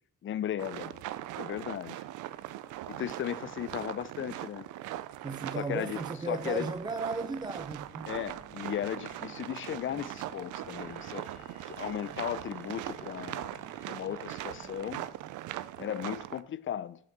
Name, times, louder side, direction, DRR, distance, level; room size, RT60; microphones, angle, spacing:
voice 1, 0.2-1.0 1.4-2.0 2.9-4.7 5.6-6.0 6.3-6.7 8.0-15.1 15.8-17.0, left 10 dB, 45° left, 0.5 m, -36 dB
sound 1, 0.6-16.4, right 14 dB, 85° right, 0.5 m, -41 dB
voice 2, 5.2-8.1, right 3 dB, 15° right, 0.4 m, -35 dB
sound 2, 6.7-15.1, right 4 dB, 60° right, 1.6 m, -56 dB
Bowed string instrument, 10.6-15.3, left 5 dB, 85° left, 1.4 m, -57 dB
5.8 x 5.8 x 6.6 m
cardioid pair, 90°, 30 cm